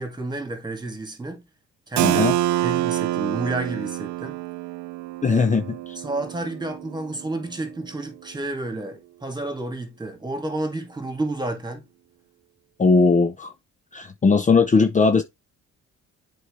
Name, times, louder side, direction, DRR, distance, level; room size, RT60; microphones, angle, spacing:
voice 1, 0.0-1.4 1.9-2.3 2.6-4.4 5.3-5.5 5.9-11.8, right 2 dB, 15° right, 2.3 m, -30 dB
voice 2, 2.0-2.3 5.2-5.6 5.9-6.0 12.8-13.5 13.9-15.2, left 4 dB, 25° left, 0.6 m, -18 dB
Keyboard (musical), 2.0-7.5, right 15 dB, 75° right, 0.4 m, -27 dB
7.9 x 4.8 x 3.2 m
cardioid pair, 90°, 30 cm